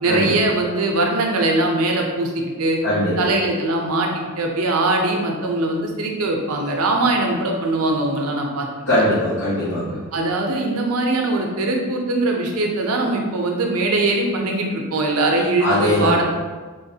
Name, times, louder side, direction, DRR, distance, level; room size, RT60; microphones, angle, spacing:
voice 1, 0.0-2.8 3.2-8.8 10.1-16.2, right 2 dB, 85° right, 1 dB, 0.6 m, -21 dB
voice 2, 2.8-3.3 8.9-10.0 15.6-16.2, left 1 dB, 75° left, -14 dB, 1.4 m, -20 dB
3.8 x 3.1 x 2.7 m, 1.4 s
head